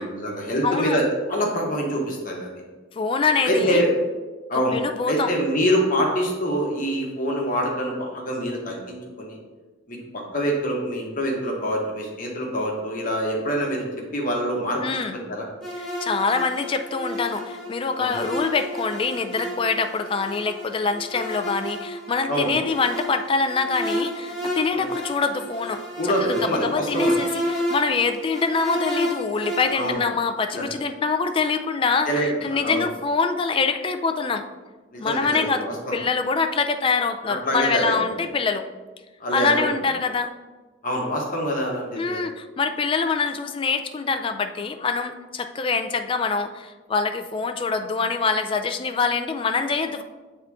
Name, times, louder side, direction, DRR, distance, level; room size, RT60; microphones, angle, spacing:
voice 1, 0.0-2.5 3.4-3.9 4.5-9.4 9.9-13.8 14.1-14.8 15.3-15.4 18.0-18.2 22.3-22.5 24.7-24.9 26.0-27.2 29.7-30.0 30.5-30.6 32.1-32.9 34.9-36.0 37.4-38.3 39.2-39.7 40.8-42.2, equal, 45° left, -1 dB, 1.2 m, -25 dB
voice 2, 0.6-1.0 3.0-3.8 4.7-5.3 14.8-15.2 15.8-25.8 26.2-34.4 35.0-35.7 35.9-38.7 39.3-40.3 42.0-50.0, left 4 dB, 25° left, 8 dB, 0.3 m, -25 dB
sound 1, 15.6-29.9, equal, ahead, 1.4 m, -31 dB
7.7 x 3.6 x 3.5 m, 1.3 s
head